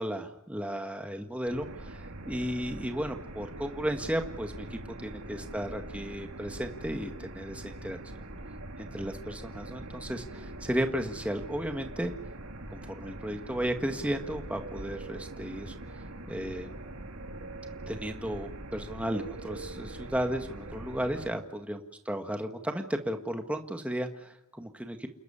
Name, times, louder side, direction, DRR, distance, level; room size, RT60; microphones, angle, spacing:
voice 1, 0.0-8.0 8.8-12.1 12.7-15.7 16.3-16.7 17.9-21.4 21.7-21.8 22.1-25.1, equal, 5° right, 4 dB, 1.7 m, -34 dB
sound 1, 1.5-21.3, right 1 dB, 80° right, 3.1 m, -43 dB
29.5 x 13.0 x 9.9 m, 0.95 s
head